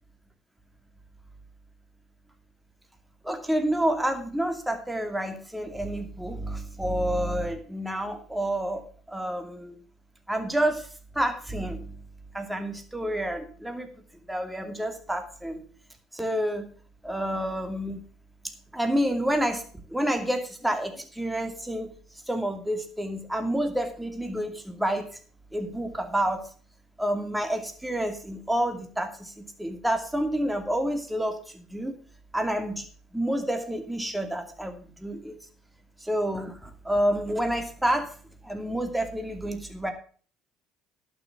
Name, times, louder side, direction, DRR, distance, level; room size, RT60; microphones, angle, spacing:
voice 1, 3.2-9.8 10.3-10.9 11.1-12.0 12.3-13.9 14.3-15.6 16.1-16.7 17.0-18.0 18.7-19.6 19.9-21.9 22.3-25.1 25.5-26.5 27.0-31.4 31.7-32.0 32.3-32.8 33.1-35.4 36.0-38.1 38.4-39.9, right 1 dB, 5° right, 5 dB, 2.6 m, -29 dB
11.5 x 6.4 x 6.9 m, 0.43 s
hypercardioid pair, 65°, 0 cm